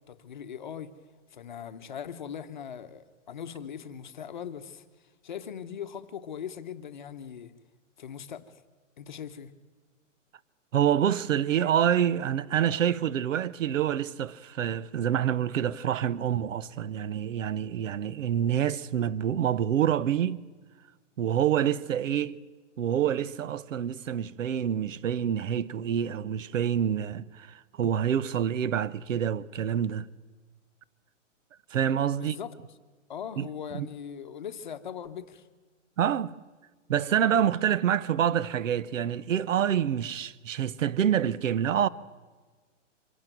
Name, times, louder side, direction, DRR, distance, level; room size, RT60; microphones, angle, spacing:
voice 1, 0.1-0.9 1.3-4.8 5.2-7.5 8.0-8.6 9.0-9.5 32.1-32.5 33.1-35.5, left 8 dB, 40° left, 0.9 m, -40 dB
voice 2, 10.7-20.4 21.2-22.4 22.8-30.1 31.7-32.4 33.4-33.9 36.0-36.3 36.9-41.9, right 9 dB, 80° right, 0.9 m, -27 dB
25.0 x 12.0 x 9.2 m
hypercardioid pair, 180°, 38 cm